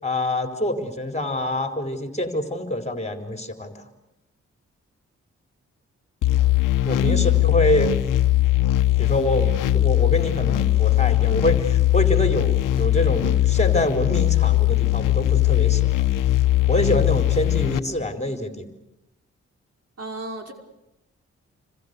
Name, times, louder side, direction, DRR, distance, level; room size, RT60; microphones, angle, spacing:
voice 1, 0.0-3.8 6.8-7.9 9.0-15.9 16.7-18.7, left 1 dB, 20° left, 4 dB, 4.0 m, -25 dB
sound 1, 6.2-17.8, left 15 dB, 90° left, 1.1 m, -20 dB
voice 2, 20.0-20.5, right 3 dB, 50° right, 3 dB, 5.5 m, -31 dB
28.5 x 26.0 x 6.8 m, 0.92 s
supercardioid pair, 45°, 31 cm